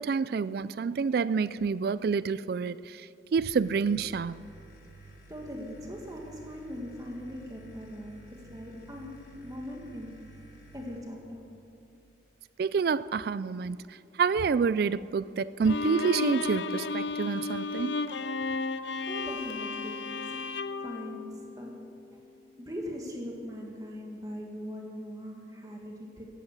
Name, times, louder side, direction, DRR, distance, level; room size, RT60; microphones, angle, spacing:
voice 1, 0.0-4.5 12.6-13.8 14.2-18.0, right 5 dB, 55° right, 0.3 m, -28 dB
sound 1, 3.4-11.0, right 2 dB, 55° left, 3.6 m, -52 dB
voice 2, 5.0-10.3 10.7-11.5 19.1-20.4 20.8-22.2 22.6-26.3, equal, 20° right, 1.8 m, -41 dB
Bowed string instrument, 15.6-21.9, left 3 dB, 70° left, 0.6 m, -34 dB
15.5 x 11.0 x 8.1 m
head